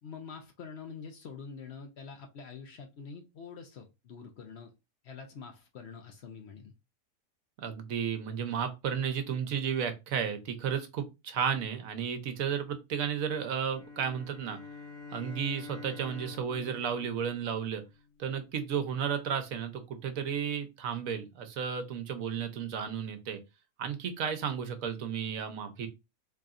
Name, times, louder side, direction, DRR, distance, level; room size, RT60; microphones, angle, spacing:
voice 1, 0.0-4.7 5.0-6.7, left 5 dB, 60° left, 0.8 m, -46 dB
voice 2, 7.6-14.6 15.1-17.8 18.2-23.4 23.8-25.9, right 7 dB, 70° right, 1.1 m, -33 dB
sound 1, 13.7-18.1, left 4 dB, 20° left, 1.9 m, -47 dB
3.8 x 3.3 x 2.4 m
omnidirectional pair, 1.5 m